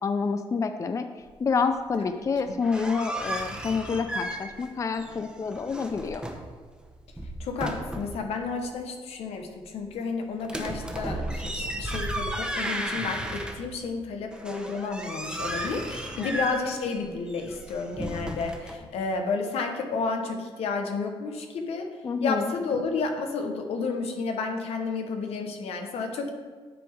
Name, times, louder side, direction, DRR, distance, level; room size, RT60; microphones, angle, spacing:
voice 1, 0.0-6.2 16.2-16.3 22.0-22.5, left 5 dB, 30° left, 9 dB, 0.4 m, -28 dB
sound 1, 2.4-4.7 4.9-6.5 7.0-8.2 10.4-13.9 14.3-18.7, right 1 dB, 10° right, 0.9 m, -34 dB
voice 2, 7.4-21.9 22.2-26.3, left 4 dB, 85° left, 4 dB, 1.0 m, -31 dB
9.9 x 3.5 x 4.7 m, 1.5 s
cardioid pair, 90°, 10 cm